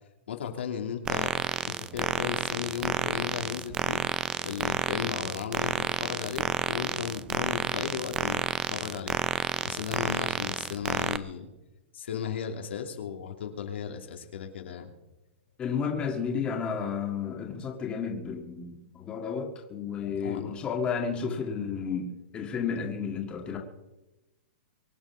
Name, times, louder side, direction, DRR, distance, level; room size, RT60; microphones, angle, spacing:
voice 1, 0.3-1.4 1.7-4.0 4.4-8.4 8.7-9.2 9.6-11.5 11.9-14.9 20.0-20.6, left 8 dB, 80° left, 3 dB, 2.8 m, -36 dB
sound 1, 1.1-11.2, right 8 dB, 15° right, 0.5 m, -30 dB
voice 2, 15.6-23.6, left 6 dB, 15° left, 2 dB, 1.8 m, -32 dB
24.0 x 9.4 x 5.9 m, 1.0 s
hypercardioid pair, 160°, 6 cm